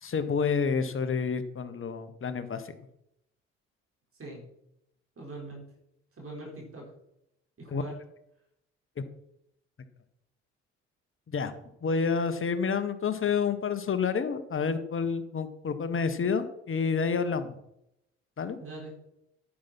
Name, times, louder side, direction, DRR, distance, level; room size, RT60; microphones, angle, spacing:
voice 1, 0.0-2.7 7.7-7.8 11.3-11.5 11.8-17.5 18.4-18.6, left 5 dB, 40° left, 10 dB, 1.5 m, -29 dB
voice 2, 5.2-5.6 6.2-6.9 7.6-8.0 18.6-18.9, right 2 dB, 40° right, -1 dB, 4.6 m, -42 dB
10.5 x 7.2 x 6.0 m, 0.80 s
hypercardioid pair, 45°, 34 cm